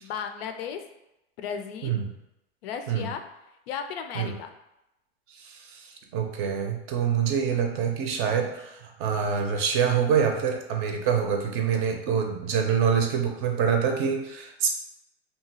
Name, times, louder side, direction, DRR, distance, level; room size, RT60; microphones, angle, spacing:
voice 1, 0.0-0.8 1.4-1.9 2.6-3.2 3.7-4.5, left 7 dB, 70° left, 7 dB, 0.5 m, -34 dB
voice 2, 5.4-5.8 6.1-14.7, right 7 dB, 40° right, 3 dB, 0.5 m, -25 dB
2.8 x 2.3 x 2.8 m, 0.89 s
hypercardioid pair, 110°, 32 cm